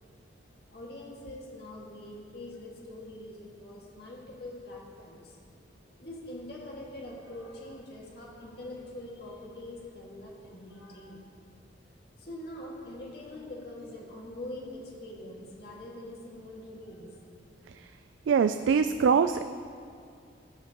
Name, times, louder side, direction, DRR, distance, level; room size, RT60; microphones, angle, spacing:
voice 1, 0.7-5.4 6.0-11.3 12.2-17.3, left 1 dB, 55° left, -3 dB, 2.0 m, -44 dB
voice 2, 18.3-19.4, right 6 dB, 90° right, 9 dB, 0.3 m, -23 dB
17.5 x 8.3 x 3.0 m, 2.3 s
head